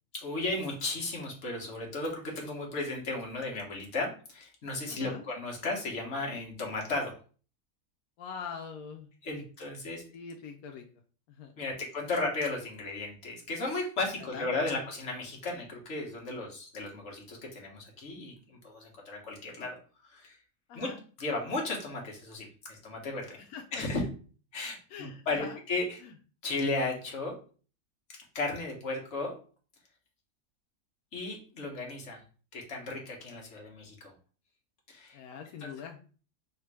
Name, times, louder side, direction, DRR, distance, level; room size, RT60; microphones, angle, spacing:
voice 1, 0.1-7.1 9.2-10.0 11.6-19.8 20.0-20.4 20.7-20.9 21.2-23.4 23.7-24.0 24.5-26.0 26.4-27.4 28.3-29.4 31.1-32.2 32.5-34.1 34.9-35.2 35.6-35.7, left 2 dB, 55° left, -1 dB, 1.5 m, -35 dB
voice 2, 4.9-5.3 8.2-9.4 10.1-10.9 11.3-11.5 14.2-14.8 20.7-21.0 23.4-23.8 24.9-25.6 26.0-26.1 35.1-36.0, left 6 dB, 85° left, 3 dB, 1.1 m, -43 dB
3.6 x 2.6 x 4.6 m, 0.39 s
omnidirectional pair, 1.5 m